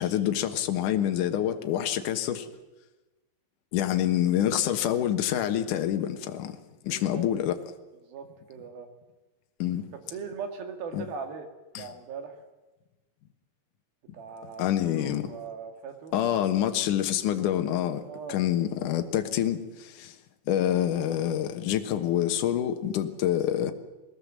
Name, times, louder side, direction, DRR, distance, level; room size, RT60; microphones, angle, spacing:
voice 1, 0.0-2.5 3.7-6.6 6.8-7.6 9.6-9.8 10.9-11.1 11.7-11.9 14.6-15.3 16.1-18.0 18.3-20.1 20.5-23.7, left 11 dB, 65° left, 2.1 m, -27 dB
voice 2, 6.9-7.3 8.0-8.9 10.1-11.5 11.8-12.4 14.1-14.7 15.0-16.1 18.1-18.4, right 6 dB, 60° right, 3.3 m, -39 dB
21.0 x 18.5 x 7.4 m
omnidirectional pair, 5.1 m